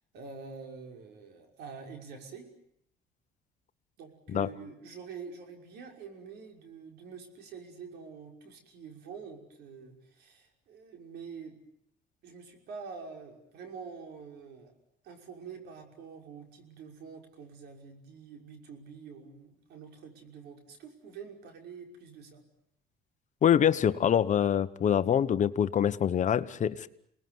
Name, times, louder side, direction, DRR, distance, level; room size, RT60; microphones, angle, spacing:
voice 1, 0.1-2.5 4.0-11.6 12.2-14.7 15.0-22.4, right 5 dB, 75° right, 4 dB, 5.9 m, -46 dB
voice 2, 23.4-26.9, left 9 dB, 45° left, 13 dB, 1.2 m, -25 dB
28.0 x 20.0 x 9.6 m, 0.71 s
cardioid pair, 110°, 17 cm